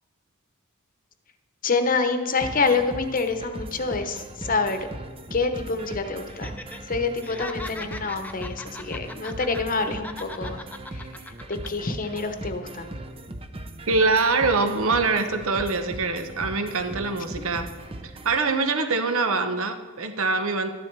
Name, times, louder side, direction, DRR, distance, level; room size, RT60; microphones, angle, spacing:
voice 1, 1.6-4.8 5.3-6.5 6.9-10.6 10.9-12.9, left 4 dB, 40° left, 7 dB, 0.9 m, -27 dB
sound 1, 2.4-18.4, right 1 dB, 25° right, 0.7 m, -39 dB
Laughter, 6.3-6.8 7.1-9.8 10.0-11.7 12.0-12.2, left 2 dB, 10° left, 0.6 m, -39 dB
voice 2, 13.9-17.7 18.2-20.7, right 3 dB, 70° right, 7 dB, 1.1 m, -24 dB
13.0 x 10.5 x 4.7 m, 1.4 s
head